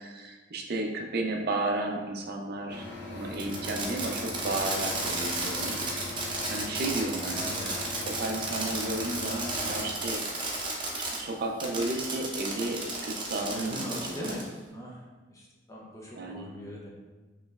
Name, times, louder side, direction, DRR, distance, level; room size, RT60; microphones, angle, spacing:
voice 1, 0.0-5.8 6.5-7.7 8.1-10.2 11.1-14.3 16.2-16.5, right 2 dB, 55° right, 2 dB, 0.5 m, -33 dB
sound 1, 2.7-9.9, left 3 dB, 65° left, 0.6 m, -41 dB
Fireworks, 3.3-11.2 11.6-14.5, right 2 dB, 25° right, 0.7 m, -33 dB
voice 2, 7.3-7.7 13.5-14.4 14.7-16.9, equal, 15° left, -3 dB, 0.6 m, -41 dB
5.1 x 3.2 x 2.3 m, 1.3 s
head